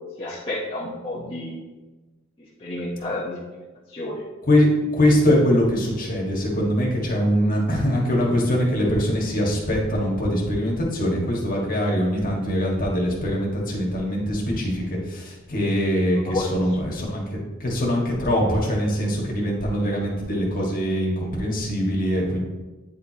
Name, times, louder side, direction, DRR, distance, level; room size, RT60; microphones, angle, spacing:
voice 1, 0.2-1.6 2.6-3.4 3.9-4.2 16.1-16.5, left 1 dB, 25° left, -8 dB, 0.9 m, -30 dB
voice 2, 4.9-17.2 17.6-22.4, equal, 45° left, -2 dB, 1.6 m, -22 dB
9.6 x 4.6 x 2.9 m, 1.2 s
head